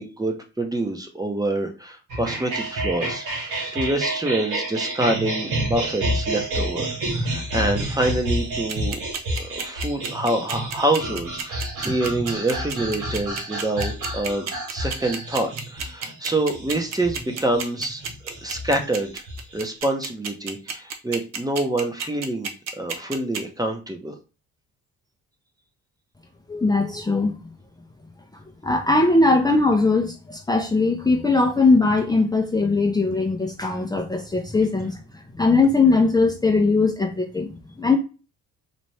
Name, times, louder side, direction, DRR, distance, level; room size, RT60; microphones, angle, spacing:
voice 1, 0.0-9.0 9.4-18.0 18.4-19.2 19.5-22.5 22.8-24.2, right 1 dB, 10° right, 4 dB, 0.9 m, -26 dB
sound 1, 2.1-19.8, right 1 dB, 85° right, 1.6 m, -29 dB
sound 2, 8.7-23.4, right 6 dB, 60° right, 0.8 m, -30 dB
voice 2, 26.5-27.3 28.6-38.0, left 3 dB, 15° left, 1 dB, 0.6 m, -20 dB
4.2 x 2.5 x 3.2 m, 0.32 s
cardioid pair, 90°, 30 cm